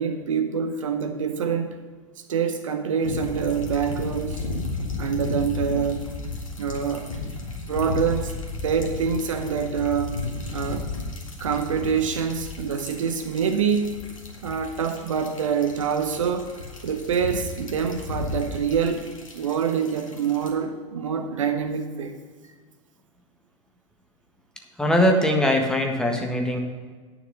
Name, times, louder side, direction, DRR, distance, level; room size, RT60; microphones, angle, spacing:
voice 1, 0.0-1.8 2.3-4.4 5.0-6.1 6.6-7.1 7.6-8.3 8.6-10.2 10.5-10.9 11.4-13.9 14.4-16.5 16.8-19.1 19.3-22.2, right 7 dB, 70° right, 7 dB, 0.8 m, -26 dB
sound 1, 3.0-20.5, left 3 dB, 75° left, 2.1 m, -34 dB
voice 2, 24.8-26.6, left 1 dB, 5° left, 2 dB, 1.5 m, -21 dB
9.4 x 7.0 x 6.6 m, 1.5 s
figure-of-eight pair, 85°, 17 cm